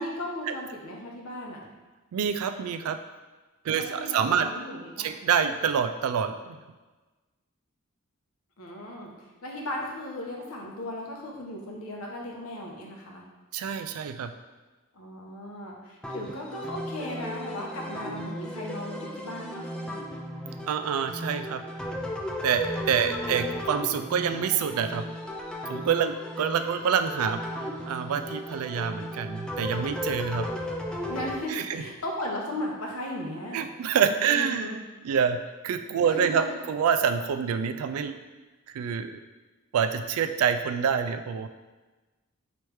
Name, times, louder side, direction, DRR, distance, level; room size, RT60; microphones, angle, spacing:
voice 1, 0.0-1.7 3.7-5.1 8.6-13.2 14.9-19.7 22.9-23.6 31.1-33.7 34.0-34.8 36.0-36.6, left 1 dB, 85° left, -1 dB, 0.8 m, -36 dB
voice 2, 2.1-3.0 3.7-4.5 5.0-6.6 13.5-14.3 20.7-21.6 22.4-25.0 25.7-27.4 27.9-30.5 31.5-31.6 33.5-34.7 35.0-35.4 35.6-38.2 38.7-39.1 39.7-41.5, right 7 dB, 85° right, 9 dB, 0.3 m, -26 dB
sound 1, 16.0-31.4, equal, 5° left, 0.3 m, -35 dB
3.3 x 3.1 x 4.6 m, 1.2 s
head